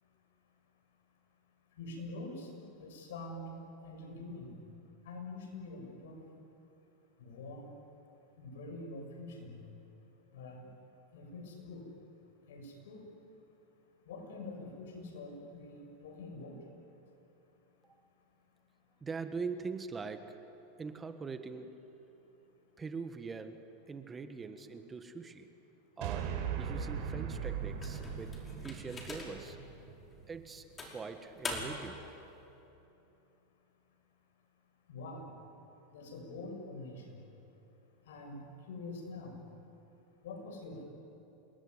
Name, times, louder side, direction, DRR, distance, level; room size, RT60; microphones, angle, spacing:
voice 1, 1.8-4.6 5.0-6.2 7.2-7.7 8.4-9.6 10.3-10.7 11.1-11.9 12.5-13.1 14.1-16.6 34.9-35.3 35.9-37.2 38.1-39.4 40.2-40.8, left 2 dB, 80° left, 3 dB, 7.2 m, -45 dB
voice 2, 19.0-20.4 20.8-21.7 22.8-25.5 26.0-29.6 30.3-32.0, right 4 dB, 20° right, 8 dB, 1.7 m, -43 dB
sound 1, 26.0-30.4, right 7 dB, 60° right, 4.4 m, -39 dB
sound 2, 27.8-29.5 30.1-30.2 30.8-32.0, left 2 dB, 20° left, 5.5 m, -42 dB
28.5 x 21.0 x 9.9 m, 2.9 s
supercardioid pair, 120°, 0 cm